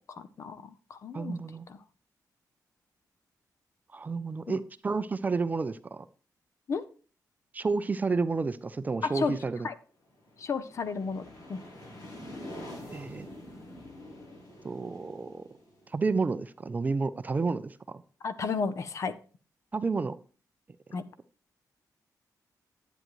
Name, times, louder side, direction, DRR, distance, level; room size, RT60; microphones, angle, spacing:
voice 1, 0.1-1.4 1.7-1.8 4.5-4.6 6.7-6.8 9.0-9.4 9.6-9.8 10.4-11.6 18.2-19.1 20.9-21.0, left 5 dB, 50° left, 13 dB, 0.7 m, -33 dB
voice 2, 1.1-1.7 3.9-6.1 7.5-9.7 12.9-13.3 14.6-15.4 15.9-18.0 19.7-20.1, right 4 dB, 25° right, 13 dB, 0.4 m, -30 dB
sound 1, 10.1-16.8, left 1 dB, 70° left, 5.0 m, -46 dB
10.5 x 8.9 x 3.0 m, 0.37 s
wide cardioid pair, 170°, 7 cm